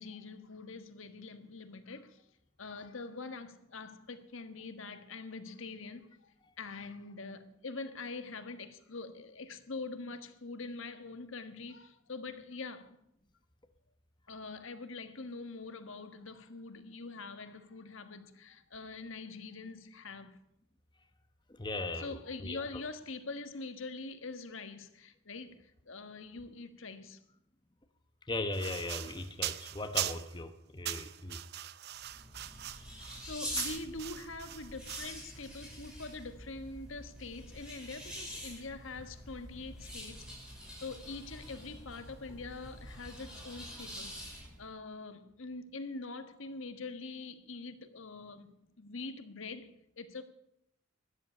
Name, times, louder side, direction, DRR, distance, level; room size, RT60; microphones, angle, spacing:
voice 1, 0.0-2.3 2.6-13.0 14.3-20.4 22.0-27.2 33.2-40.3 40.8-50.2, left 3 dB, 70° left, 1.5 m, -44 dB
voice 2, 21.6-22.6 28.3-31.4, left 2 dB, 20° left, 1.0 m, -38 dB
sound 1, 28.5-30.4 30.8-35.2, right 13 dB, 50° right, 0.6 m, -40 dB
sound 2, 31.9-44.7, equal, 5° right, 5.6 m, -45 dB
13.0 x 11.0 x 9.7 m
head